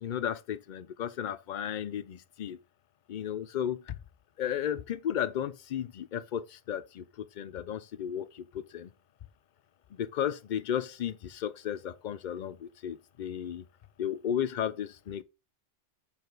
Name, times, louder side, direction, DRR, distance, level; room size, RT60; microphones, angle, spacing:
voice 1, 0.0-2.6 3.1-3.9 4.4-8.9 9.9-13.6 14.0-15.2, left 9 dB, 60° left, 0.5 m, -34 dB
6.7 x 4.3 x 4.0 m
omnidirectional pair, 1.2 m